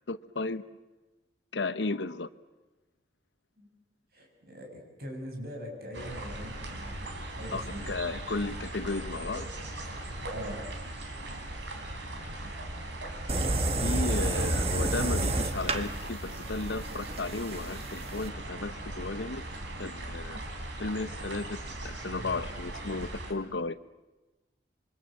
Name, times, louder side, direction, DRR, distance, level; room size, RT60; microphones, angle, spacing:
voice 1, 0.1-0.6 1.5-2.3 7.5-9.5 13.8-19.5 19.8-20.4 20.8-23.8, left 3 dB, 85° left, 13 dB, 1.0 m, -34 dB
voice 2, 4.1-7.1 7.3-7.9 10.3-10.6, equal, 55° right, 2 dB, 6.5 m, -41 dB
sound 1, 5.9-23.3, right 1 dB, 85° right, 4.0 m, -39 dB
sound 2, 13.3-18.3, right 2 dB, 35° right, 1.4 m, -30 dB
26.5 x 24.0 x 7.5 m, 1.1 s
head